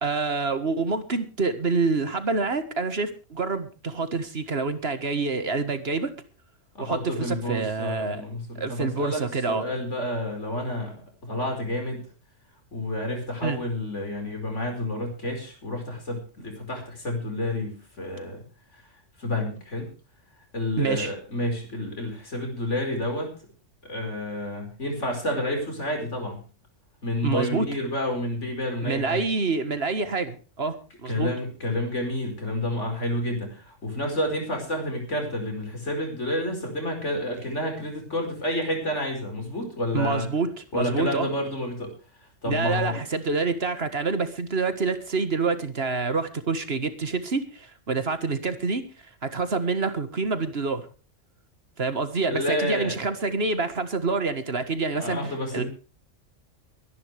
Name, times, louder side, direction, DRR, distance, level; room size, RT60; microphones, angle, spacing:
voice 1, 0.0-6.1 6.8-8.2 8.6-9.6 13.4-13.6 20.8-21.1 27.2-27.7 28.8-30.8 31.0-31.3 39.9-40.5 40.7-41.3 42.5-48.8 49.2-50.8 51.8-55.6, right 4 dB, 55° right, 10 dB, 1.8 m, -27 dB
voice 2, 6.8-9.2 9.5-11.0 11.2-12.0 12.7-18.4 19.2-19.9 20.5-23.3 23.8-26.4 27.0-29.2 31.1-40.2 40.7-41.9 42.4-43.0 52.3-52.9 54.9-55.6, left 1 dB, 70° left, 3 dB, 5.3 m, -29 dB
24.0 x 11.0 x 3.5 m, 0.35 s
omnidirectional pair, 1.3 m